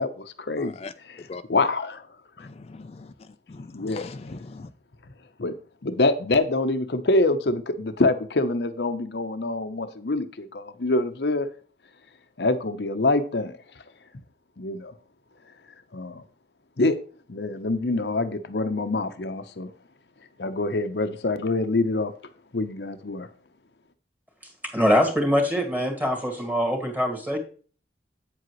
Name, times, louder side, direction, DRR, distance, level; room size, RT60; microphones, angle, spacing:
voice 1, 0.0-0.7 1.5-2.1 2.4-2.5 3.7-4.4 5.4-5.5 5.8-11.5 12.4-13.6 14.6-14.9 15.9-16.2 16.8-17.0 17.3-19.7 20.4-22.1 22.5-23.3, left 2 dB, 70° left, 0.8 m, -25 dB
voice 2, 0.6-1.4 2.4-4.7, left 3 dB, 35° left, 0.4 m, -41 dB
voice 3, 24.7-27.4, equal, 10° right, 1.9 m, -23 dB
8.8 x 7.7 x 3.1 m
head